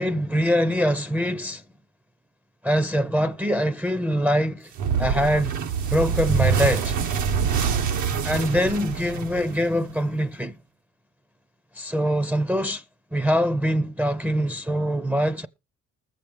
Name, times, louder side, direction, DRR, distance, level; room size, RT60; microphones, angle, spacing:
voice 1, 0.0-1.6 2.6-4.7 5.0-5.5 5.9-6.9 8.2-10.6 11.7-12.8 13.1-15.5, equal, 5° right, 0.5 m, -23 dB
sound 1, 4.8-9.9, right 7 dB, 80° right, 1.0 m, -25 dB
20.0 x 7.3 x 3.4 m
cardioid pair, 90°, 30 cm